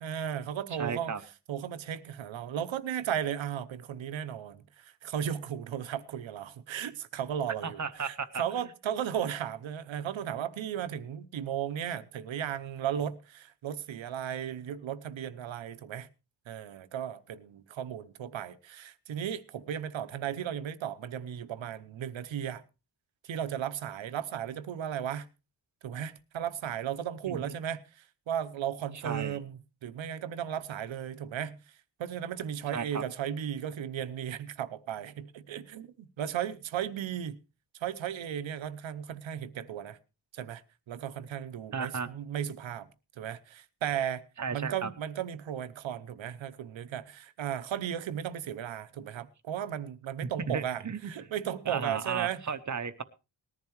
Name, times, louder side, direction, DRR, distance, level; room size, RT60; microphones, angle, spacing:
voice 1, 0.0-1.1 1.5-16.1 16.5-22.6 23.2-25.3 25.8-31.6 32.0-37.4 37.8-40.0 40.3-40.6 40.9-42.9 43.2-44.2 44.5-50.8 51.1-52.4, right 9 dB, 80° right, 0.9 m, -35 dB
voice 2, 0.7-1.2 7.6-8.7 27.3-27.5 29.0-29.4 32.6-33.0 41.7-42.1 44.4-44.9 50.2-51.3 51.6-53.0, right 5 dB, 40° right, 0.9 m, -35 dB
19.5 x 10.5 x 3.1 m
wide cardioid pair, 130°, 46 cm